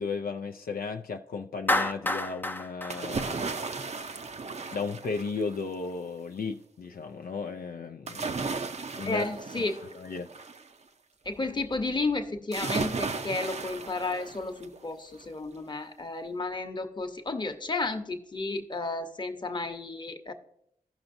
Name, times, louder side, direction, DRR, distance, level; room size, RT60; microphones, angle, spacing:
voice 1, 0.0-3.5 4.7-8.3 9.0-9.3 9.8-10.3, left 4 dB, 80° left, 0.4 m, -35 dB
Clapping, 1.7-4.0, left 1 dB, 10° left, 0.4 m, -30 dB
sound 1, 2.9-5.7 8.1-10.7 12.5-14.8 15.2-15.3, right 4 dB, 45° right, 0.5 m, -35 dB
voice 2, 9.0-9.8 11.2-20.3, left 3 dB, 30° left, 0.9 m, -32 dB
15.5 x 5.8 x 2.6 m
wide cardioid pair, 85°, 15 cm